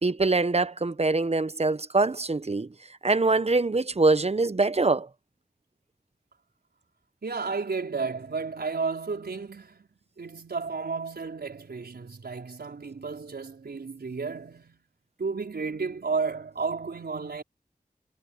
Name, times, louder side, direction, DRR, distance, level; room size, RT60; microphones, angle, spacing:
voice 1, 0.0-2.7 3.0-5.1, right 3 dB, 40° right, 0.9 m, -24 dB
voice 2, 7.2-9.9 10.2-14.8 15.2-17.4, right 4 dB, 90° right, 5.0 m, -32 dB
cardioid pair, 40°, 16 cm